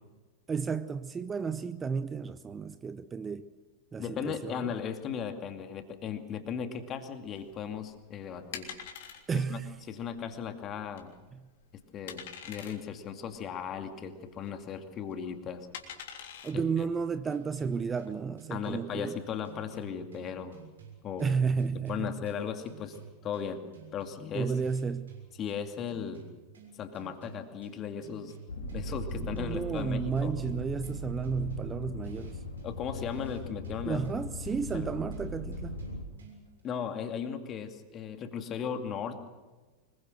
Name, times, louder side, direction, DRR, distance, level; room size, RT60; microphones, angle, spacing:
voice 1, 0.5-3.5 3.9-4.7 9.3-9.8 11.3-11.4 16.4-19.2 21.2-22.2 24.3-25.2 29.2-32.4 33.8-35.8, right 5 dB, 20° right, 0.8 m, -32 dB
voice 2, 4.0-8.7 9.3-9.6 9.9-11.1 11.9-15.7 16.5-16.6 18.5-20.6 21.0-21.3 21.9-23.0 23.2-23.6 23.9-24.5 25.4-26.3 26.8-30.3 32.6-34.0 34.7-34.9 36.6-39.3, left 7 dB, 30° left, 2.4 m, -37 dB
sound 1, 7.3-17.9, left 8 dB, 55° left, 3.3 m, -47 dB
sound 2, 17.3-36.6, right 7 dB, 70° right, 6.6 m, -53 dB
sound 3, 28.5-36.0, left 1 dB, 70° left, 3.5 m, -39 dB
25.0 x 22.0 x 6.6 m
figure-of-eight pair, 90°, 0 cm